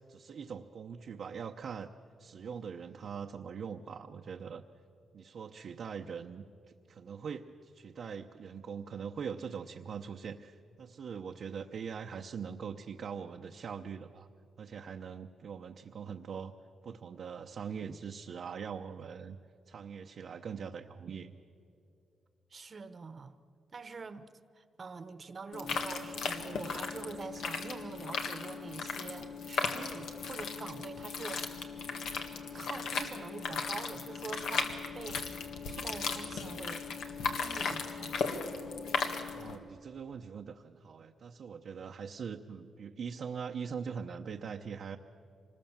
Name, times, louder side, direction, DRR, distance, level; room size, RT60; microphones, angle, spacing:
voice 1, 0.1-1.9 2.2-4.6 5.1-6.4 6.9-14.3 14.6-16.5 16.8-19.4 19.7-21.3 39.3-45.0, right 6 dB, 65° right, 2 dB, 0.8 m, -42 dB
voice 2, 22.5-23.4 23.7-31.4 32.5-34.6 34.9-36.9 37.4-38.3, right 4 dB, 40° right, 12 dB, 1.1 m, -45 dB
sound 1, 25.5-39.6, left 5 dB, 85° left, 1.8 m, -36 dB
25.5 x 20.5 x 7.3 m, 2.5 s
cardioid pair, 100°, 0 cm